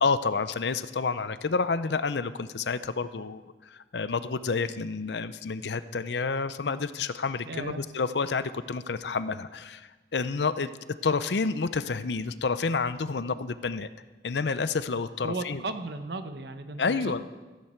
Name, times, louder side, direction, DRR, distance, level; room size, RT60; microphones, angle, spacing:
voice 1, 0.0-10.7 11.0-13.9 14.2-15.6 16.8-17.2, left 4 dB, 80° left, 14 dB, 0.6 m, -29 dB
voice 2, 7.5-7.8 15.2-17.2, right 3 dB, 70° right, 9 dB, 1.0 m, -35 dB
15.5 x 15.0 x 4.5 m, 1.3 s
head